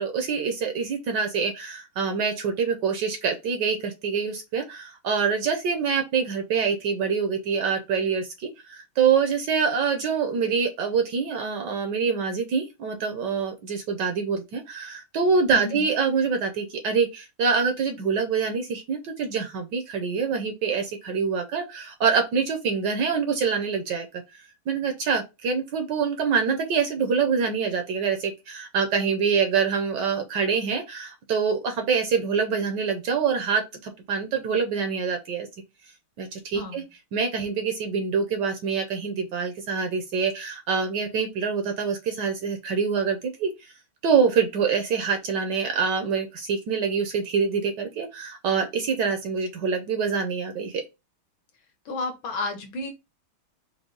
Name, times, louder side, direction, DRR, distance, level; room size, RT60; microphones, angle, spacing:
voice 1, 0.0-24.1 24.7-35.5 36.2-36.8 37.1-43.7 44.0-50.8, right 6 dB, 65° right, 1.1 m, -25 dB
voice 2, 15.5-15.9 36.5-36.9 51.9-52.9, left 3 dB, 70° left, 1.8 m, -32 dB
4.6 x 2.3 x 3.8 m
omnidirectional pair, 2.3 m